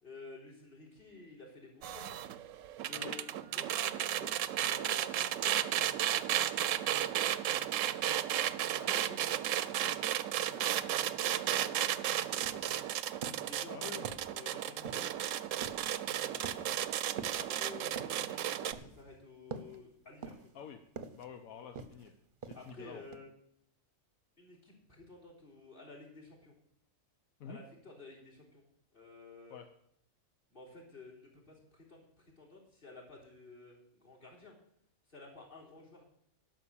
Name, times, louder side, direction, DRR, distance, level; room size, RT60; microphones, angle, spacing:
voice 1, 0.0-2.1 2.8-7.4 8.0-10.0 10.5-12.7 13.3-15.1 15.7-16.7 17.5-20.6 21.6-21.7 22.5-23.3 24.4-26.5 27.5-28.6 28.9-29.6 30.5-34.6 35.1-36.0, left 3 dB, 40° left, -1 dB, 3.8 m, -53 dB
sound 1, 1.8-18.7, right 11 dB, 70° right, 0.9 m, -34 dB
sound 2, 12.0-12.1 12.4-12.8 13.2-13.5 14.0-14.4 14.9-15.2 15.6-15.9 16.4-16.8 17.2-17.5 18.0-18.3 18.7-19.1 19.5-19.8 20.2-20.6 21.0-21.3 21.8-22.1 22.4-22.8 23.1-23.2, right 4 dB, 45° right, 0.8 m, -45 dB
voice 2, 13.7-14.1 17.4-17.5 20.5-20.8 21.1-22.1 22.4-23.0 27.4-27.6 29.5-29.7, left 7 dB, 80° left, 6 dB, 1.3 m, -47 dB
11.5 x 6.3 x 8.6 m, 0.71 s
omnidirectional pair, 1.4 m